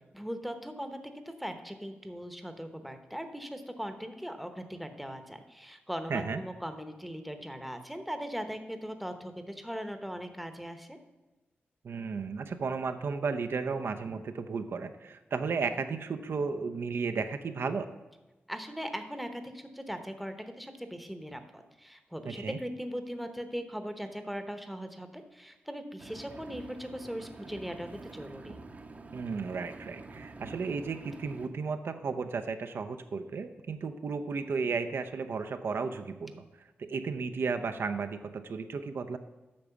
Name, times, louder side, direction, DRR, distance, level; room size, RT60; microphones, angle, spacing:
voice 1, 0.1-11.0 18.5-28.6, equal, ahead, 7 dB, 0.9 m, -39 dB
voice 2, 6.1-6.4 11.8-17.9 22.3-22.6 29.1-36.4 36.8-39.2, right 5 dB, 65° right, 8 dB, 0.6 m, -34 dB
Engine, 26.0-31.5, right 3 dB, 35° right, 0.8 m, -47 dB
8.6 x 6.2 x 7.0 m, 1.1 s
wide cardioid pair, 105°, 4 cm